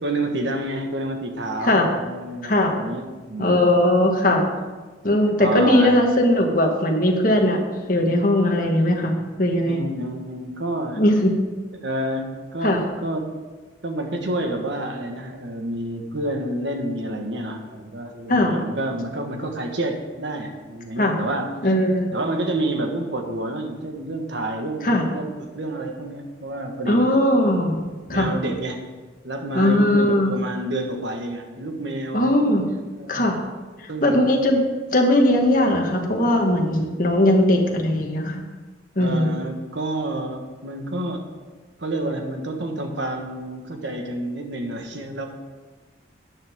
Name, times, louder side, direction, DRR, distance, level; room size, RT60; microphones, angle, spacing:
voice 1, 0.0-3.6 5.4-6.0 9.6-11.0 11.8-13.3 13.8-21.5 22.1-27.1 28.1-28.9 29.2-32.5 33.0-33.3 33.9-34.3 39.0-41.3 41.8-45.3, right 1 dB, 80° right, 4 dB, 1.5 m, -29 dB
voice 2, 2.4-2.7 3.4-4.4 5.0-7.6 7.9-9.1 9.4-9.8 11.0-11.3 12.6-12.8 18.3-18.5 21.0-21.1 21.6-22.1 24.8-25.0 26.9-27.8 28.1-28.3 29.5-30.3 32.1-32.6 33.1-33.4 34.0-34.6 34.9-38.4 38.9-39.3, left 1 dB, 50° left, 2 dB, 1.6 m, -19 dB
13.0 x 9.3 x 3.7 m, 1.3 s
head